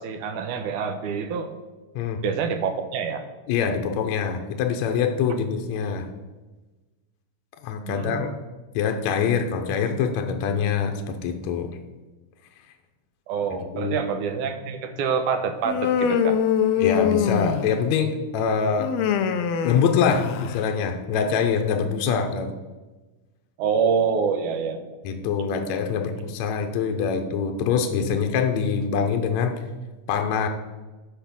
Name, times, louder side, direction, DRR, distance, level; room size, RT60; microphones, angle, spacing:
voice 1, 0.0-1.5 2.2-3.2 7.9-8.4 13.3-16.4 22.1-22.2 23.6-24.9, right 6 dB, 75° right, 8 dB, 2.1 m, -26 dB
voice 2, 3.5-6.1 7.6-8.3 8.7-11.8 13.7-14.0 16.8-18.9 19.6-22.5 25.0-29.6 30.1-30.5, left 6 dB, 70° left, 4 dB, 1.9 m, -24 dB
Human voice, 15.6-17.9 18.8-20.7, left 8 dB, 90° left, 1.5 m, -23 dB
10.5 x 5.5 x 7.1 m, 1.2 s
omnidirectional pair, 3.9 m